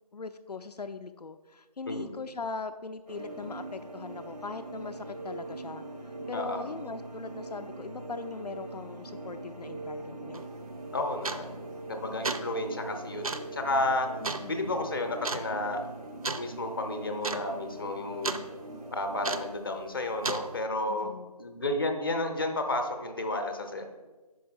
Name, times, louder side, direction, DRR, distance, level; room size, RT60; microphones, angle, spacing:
voice 1, 0.1-5.8 6.3-10.5 14.2-14.7 20.9-21.3, left 4 dB, 80° left, 8 dB, 0.4 m, -40 dB
sound 1, 3.1-19.5, right 2 dB, 85° right, 0.8 m, -42 dB
voice 2, 6.3-6.7 10.9-11.5 11.9-14.1 14.4-15.9 16.4-18.4 18.9-21.1 21.4-23.8, left 2 dB, 35° left, 6 dB, 0.6 m, -32 dB
sound 2, 10.3-10.5 11.2-11.6 12.1-12.5 13.2-13.5 14.2-14.5 15.2-15.5 16.2-16.5 16.8-16.9 17.2-17.4 17.7-18.4 19.2-19.6 20.2-20.5, right 4 dB, 60° right, 0.5 m, -33 dB
5.6 x 4.6 x 4.4 m, 1.2 s
figure-of-eight pair, 160°, 20 cm